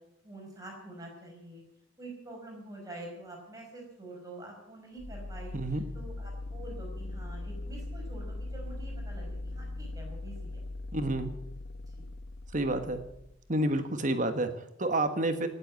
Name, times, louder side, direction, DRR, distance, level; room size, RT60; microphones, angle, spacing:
voice 1, 0.2-1.6 2.0-10.6 11.9-12.1, right 2 dB, 15° right, -1 dB, 5.1 m, -46 dB
sound 1, 5.0-13.7, left 2 dB, 80° left, 0.9 m, -40 dB
voice 2, 5.5-5.8 10.9-11.3 12.5-13.0 13.5-15.5, right 1 dB, 40° right, 8 dB, 1.4 m, -29 dB
18.0 x 8.0 x 9.5 m, 0.82 s
head